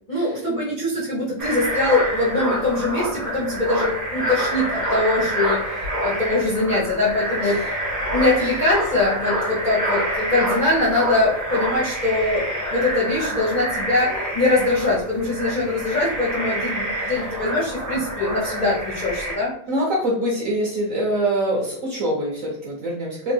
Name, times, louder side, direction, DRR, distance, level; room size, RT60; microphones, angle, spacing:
voice 1, 0.1-7.8 8.1-19.5, left 2 dB, 45° left, -8 dB, 0.6 m, -22 dB
sound 1, 1.4-19.4, right 1 dB, 15° right, 0.7 m, -27 dB
voice 2, 19.7-23.3, right 1 dB, 55° right, -4 dB, 1.0 m, -24 dB
3.5 x 2.2 x 2.7 m, 0.67 s
omnidirectional pair, 2.1 m